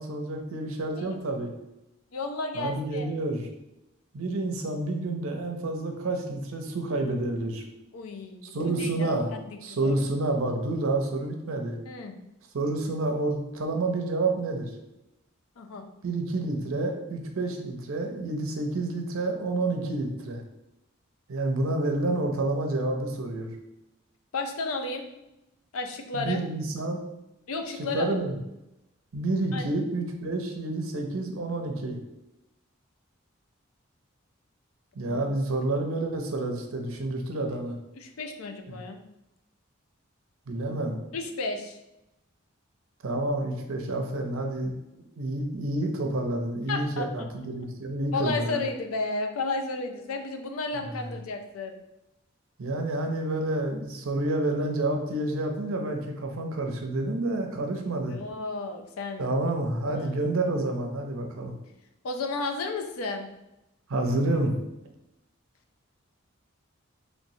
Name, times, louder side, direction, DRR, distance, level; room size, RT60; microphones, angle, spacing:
voice 1, 0.0-1.5 2.5-3.5 4.1-7.6 8.4-9.3 9.6-11.8 12.5-14.7 16.0-20.4 21.3-23.5 26.1-27.0 27.9-28.4 29.1-32.0 34.9-37.8 38.7-38.8 40.5-41.0 43.0-44.7 45.2-48.6 50.8-51.1 52.6-58.2 59.2-61.5 63.9-64.6, right 2 dB, 80° right, 3 dB, 0.6 m, -29 dB
voice 2, 2.1-3.1 7.9-9.5 9.8-9.9 11.9-12.2 15.6-15.8 24.3-25.1 25.7-26.4 27.5-28.2 29.5-29.7 35.0-35.4 37.5-37.6 38.0-39.0 41.1-41.8 46.7-47.3 48.1-51.7 58.1-59.3 59.9-60.1 62.0-63.3, left 3 dB, 85° left, 5 dB, 0.5 m, -33 dB
3.1 x 3.0 x 2.7 m, 0.90 s
head